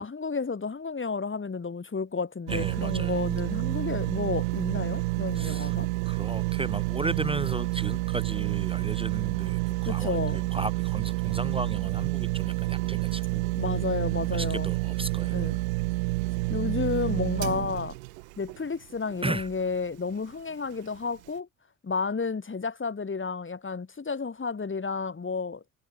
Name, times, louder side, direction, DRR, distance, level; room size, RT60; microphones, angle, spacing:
voice 1, 0.0-5.9 9.8-10.5 13.6-14.7 15.3-15.6 16.5-18.0 18.4-21.5 21.8-25.6, left 4 dB, 30° left, 5.3 m, -31 dB
voice 2, 2.5-3.2 5.3-5.7 6.0-13.5 14.3-15.5 19.2-19.5, right 2 dB, 15° right, 3.4 m, -35 dB
sound 1, 2.5-19.7 20.2-20.3, right 24 dB, 90° right, 0.7 m, -29 dB
hypercardioid pair, 60°, 39 cm